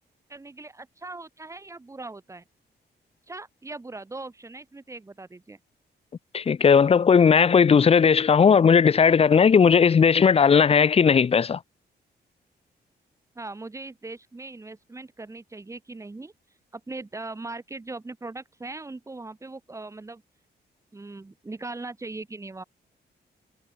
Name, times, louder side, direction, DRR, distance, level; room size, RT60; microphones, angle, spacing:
voice 1, 0.3-2.4 3.3-5.6 13.4-16.3 16.7-20.2 20.9-22.6, right 3 dB, 15° right, 4.8 m, -39 dB
voice 2, 6.3-11.6, left 6 dB, 35° left, 1.0 m, -17 dB
wide cardioid pair, 155°, 18 cm